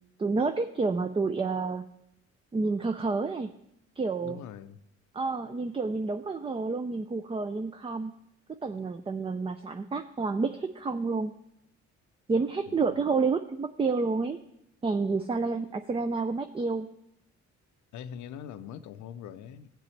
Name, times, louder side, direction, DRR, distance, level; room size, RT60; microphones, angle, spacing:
voice 1, 0.2-1.8 2.5-3.5 4.0-4.4 5.1-8.1 8.5-11.3 12.3-14.4 14.8-16.9, right 4 dB, 20° right, 0.4 m, -29 dB
voice 2, 4.2-4.8 12.7-13.0 17.9-19.7, left 9 dB, 75° left, 0.6 m, -43 dB
16.0 x 7.6 x 3.2 m
cardioid pair, 90°, 30 cm